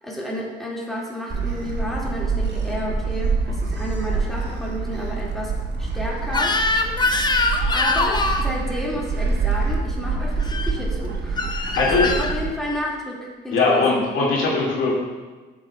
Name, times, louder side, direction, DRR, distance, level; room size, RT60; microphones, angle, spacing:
voice 1, 0.0-5.5 5.8-7.1 7.7-11.5 11.8-14.2, equal, ahead, -5 dB, 1.9 m, -31 dB
Gull seagull, 1.3-12.5, right 4 dB, 60° right, 1.0 m, -26 dB
Crying sobbing / Screech, 6.3-8.5 10.4-10.7 11.4-12.3, left 2 dB, 20° left, 0.6 m, -23 dB
voice 2, 11.5-12.1 13.5-14.9, left 4 dB, 85° left, -4 dB, 1.9 m, -20 dB
9.3 x 7.5 x 2.2 m, 1.3 s
cardioid pair, 90°, 20 cm